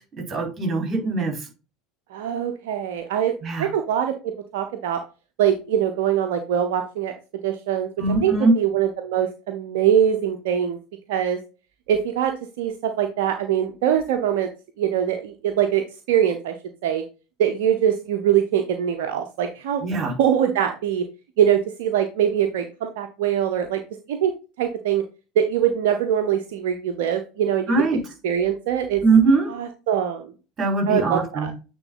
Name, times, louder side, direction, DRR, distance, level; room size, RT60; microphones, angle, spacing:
voice 1, 0.3-1.4 3.4-3.7 8.0-8.6 19.8-20.1 27.7-28.0 29.0-29.5 30.6-31.5, right 3 dB, 30° right, 0 dB, 4.3 m, -21 dB
voice 2, 2.1-3.3 3.6-4.1 4.5-5.0 5.4-7.1 7.4-7.9 8.2-10.8 11.1-11.4 11.9-14.5 14.8-15.8 16.1-16.5 16.8-17.0 17.4-19.8 20.2-21.0 21.4-23.8 24.1-24.3 24.6-25.0 25.4-27.7 28.2-29.0 29.5-30.3 30.9-31.5, right 9 dB, 65° right, 5 dB, 0.8 m, -22 dB
8.9 x 3.9 x 3.9 m, 0.32 s
figure-of-eight pair, 75°, 0 cm